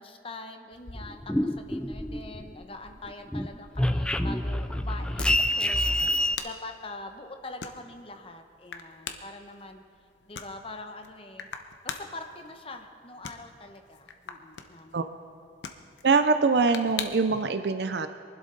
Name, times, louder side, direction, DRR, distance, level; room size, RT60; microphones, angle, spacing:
voice 1, 0.0-5.8 6.4-9.8 10.3-11.5 11.8-15.2, left 2 dB, 30° left, 6 dB, 1.0 m, -43 dB
sound 1, 0.7-17.4, left 6 dB, 85° left, 1.0 m, -45 dB
sound 2, 0.9-2.6 3.0-6.3, left 1 dB, 5° left, 0.4 m, -27 dB
voice 2, 16.0-18.1, right 4 dB, 65° right, 10 dB, 0.5 m, -23 dB
23.5 x 12.0 x 4.0 m, 2.3 s
head